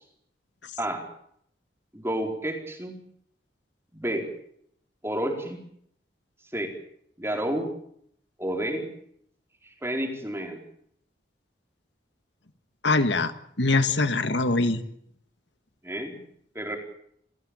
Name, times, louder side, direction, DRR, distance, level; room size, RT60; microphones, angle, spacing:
voice 1, 1.9-3.0 3.9-4.3 5.0-5.6 6.5-6.7 7.2-7.7 8.4-8.9 9.6-10.6 15.8-16.2 16.5-16.8, right 1 dB, 15° right, 3 dB, 4.4 m, -30 dB
voice 2, 12.8-13.3 13.6-14.8, left 3 dB, 75° left, 10 dB, 1.8 m, -23 dB
29.5 x 16.0 x 9.0 m, 0.70 s
head